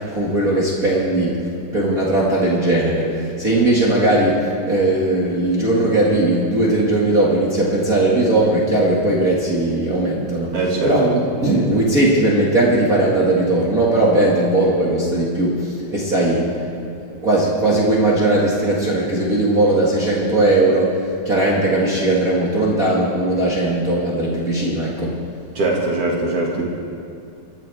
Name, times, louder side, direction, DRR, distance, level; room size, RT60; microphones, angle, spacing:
voice 1, 0.1-1.5 1.7-16.5 17.2-25.2, right 1 dB, 30° right, -5 dB, 1.8 m, -18 dB
voice 2, 10.5-10.9 25.5-26.6, right 2 dB, 50° right, -2 dB, 2.7 m, -21 dB
25.0 x 12.5 x 3.5 m, 2.5 s
omnidirectional pair, 3.9 m